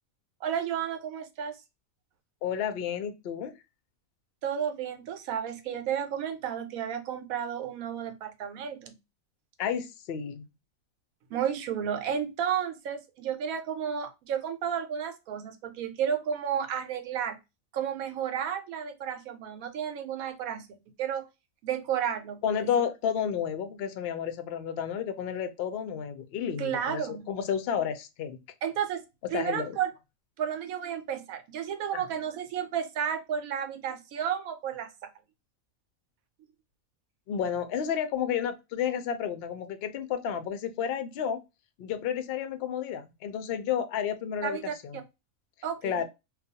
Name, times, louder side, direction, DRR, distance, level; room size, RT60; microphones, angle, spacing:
voice 1, 0.4-1.5 4.4-8.9 11.3-17.4 17.7-20.7 21.0-21.3 21.6-22.7 26.6-27.2 28.6-29.0 29.3-29.9 30.4-34.9 44.4-44.7 45.6-46.0, right 8 dB, 85° right, 1.1 m, -32 dB
voice 2, 2.4-3.5 9.6-10.4 22.4-28.4 29.3-29.8 31.9-32.0 37.3-41.4 41.8-45.0 45.8-46.0, left 8 dB, 65° left, 0.6 m, -31 dB
2.3 x 2.3 x 2.6 m
omnidirectional pair, 1.4 m